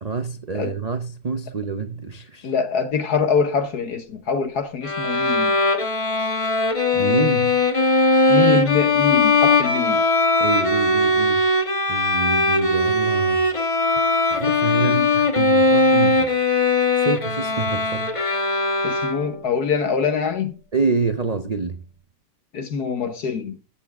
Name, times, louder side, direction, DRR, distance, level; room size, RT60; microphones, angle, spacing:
voice 1, 0.0-2.5 6.9-7.6 10.4-11.4 11.9-13.5 14.3-16.3 17.0-18.1 20.7-21.8, right 4 dB, 60° right, 0.4 m, -26 dB
voice 2, 2.4-5.6 8.3-10.0 14.8-15.1 18.8-20.6 22.5-23.6, left 6 dB, 65° left, 1.6 m, -24 dB
Bowed string instrument, 4.8-19.5, left 2 dB, 20° left, 1.1 m, -19 dB
14.0 x 7.1 x 3.5 m
omnidirectional pair, 1.8 m